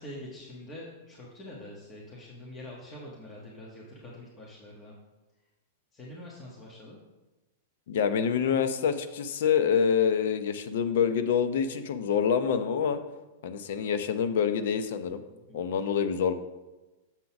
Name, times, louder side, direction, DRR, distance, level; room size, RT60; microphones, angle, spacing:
voice 1, 0.0-4.9 5.9-7.0 15.3-15.6, left 1 dB, 25° left, -4 dB, 1.3 m, -45 dB
voice 2, 7.9-13.0 13.4-15.2 15.5-16.3, left 7 dB, 70° left, 10 dB, 0.6 m, -26 dB
7.3 x 3.9 x 5.8 m, 1.1 s
hypercardioid pair, 130°, 0 cm